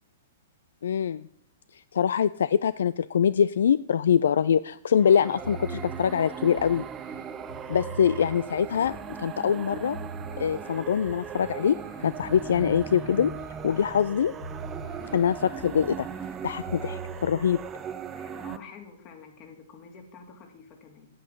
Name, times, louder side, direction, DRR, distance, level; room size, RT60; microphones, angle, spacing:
voice 1, 0.8-1.3 1.7-6.8 7.7-10.0 10.4-13.3 13.6-14.3 15.1-16.1 16.4-17.6, left 8 dB, 75° left, 16 dB, 0.3 m, -24 dB
sound 1, 4.9-18.6, right 7 dB, 25° right, 0.7 m, -38 dB
sound 2, 5.3-17.3, right 2 dB, 55° left, 4.1 m, -43 dB
voice 2, 18.1-21.1, left 5 dB, 35° left, 4 dB, 2.6 m, -48 dB
9.1 x 8.9 x 5.8 m, 0.71 s
hypercardioid pair, 120°, 0 cm